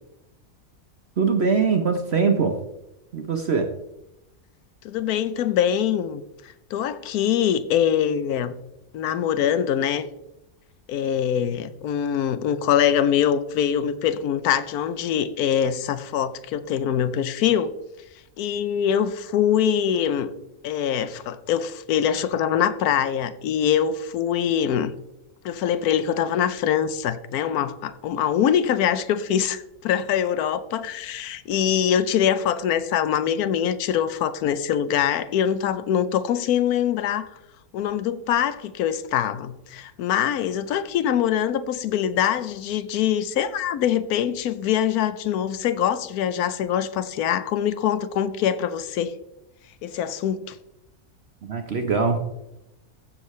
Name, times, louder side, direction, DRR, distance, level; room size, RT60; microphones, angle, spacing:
voice 1, 1.2-2.5 3.1-3.7 51.4-52.3, right 5 dB, 50° right, 5 dB, 1.0 m, -22 dB
voice 2, 4.8-6.2 6.7-8.5 8.9-10.1 10.9-17.7 18.4-20.3 20.6-24.9 25.4-37.3 37.7-49.1 49.8-50.6, left 9 dB, 80° left, 13 dB, 1.2 m, -23 dB
14.5 x 6.5 x 3.1 m, 0.90 s
omnidirectional pair, 1.6 m